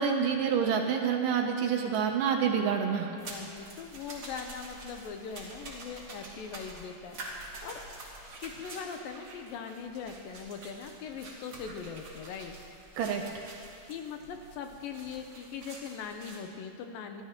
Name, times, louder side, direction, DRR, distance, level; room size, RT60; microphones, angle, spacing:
voice 1, 0.0-3.1 13.0-13.2, right 7 dB, 70° right, 3 dB, 2.2 m, -27 dB
voice 2, 3.1-7.2 7.6-7.8 8.4-12.6 13.8-17.2, left 6 dB, 80° left, 5 dB, 2.4 m, -41 dB
sound 1, 3.2-16.4, right 2 dB, 40° right, 3.0 m, -47 dB
25.5 x 14.0 x 3.0 m, 2.5 s
omnidirectional pair, 4.3 m